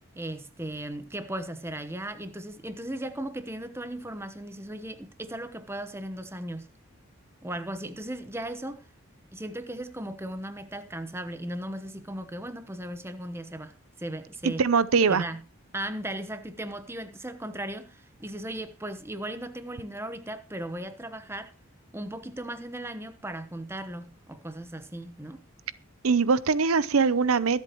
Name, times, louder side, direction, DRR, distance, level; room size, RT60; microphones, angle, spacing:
voice 1, 0.1-6.7 7.4-8.8 9.3-14.6 15.1-15.4 15.7-21.5 21.9-25.4, right 1 dB, 10° right, 1.0 m, -37 dB
voice 2, 14.4-15.2 26.0-27.6, right 5 dB, 85° right, 0.7 m, -22 dB
24.0 x 8.1 x 3.0 m
head